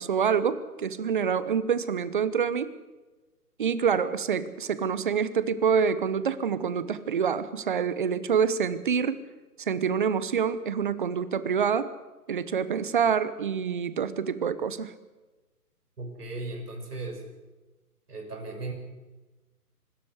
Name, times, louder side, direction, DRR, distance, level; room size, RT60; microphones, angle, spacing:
voice 1, 0.0-2.7 3.6-9.2 9.6-11.9 12.3-14.9, right 7 dB, 35° right, 15 dB, 1.0 m, -26 dB
voice 2, 16.0-17.2 18.1-18.7, right 2 dB, 75° right, 3 dB, 6.3 m, -36 dB
25.0 x 13.0 x 8.2 m, 1.2 s
hypercardioid pair, 160°, 46 cm